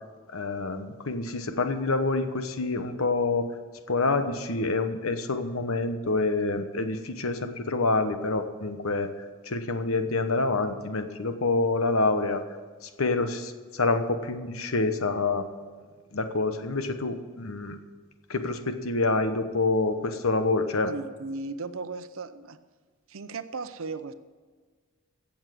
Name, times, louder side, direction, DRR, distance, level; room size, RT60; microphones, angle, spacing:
voice 1, 0.3-3.5 3.9-9.1 9.5-12.4 12.8-15.7 16.1-17.8 18.3-20.9, left 3 dB, 85° left, 8 dB, 1.1 m, -27 dB
voice 2, 20.8-22.6 23.1-24.1, right 3 dB, 75° right, 11 dB, 0.7 m, -36 dB
16.0 x 7.3 x 7.7 m, 1.5 s
head